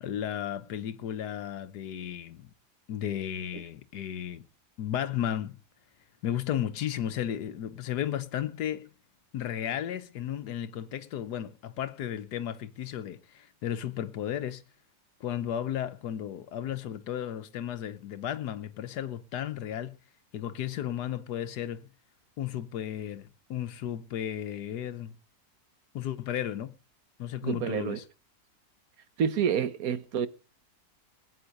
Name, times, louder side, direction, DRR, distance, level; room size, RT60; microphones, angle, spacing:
voice 1, 0.0-2.5 2.9-4.4 4.8-5.6 6.2-8.9 9.3-14.6 15.2-20.0 20.3-21.9 22.4-25.1 25.9-26.7 27.2-28.0, left 10 dB, 90° left, 1.5 m, -34 dB
voice 2, 27.4-28.0 29.2-30.3, right 8 dB, 65° right, 1.4 m, -28 dB
19.5 x 8.9 x 5.2 m
omnidirectional pair, 1.7 m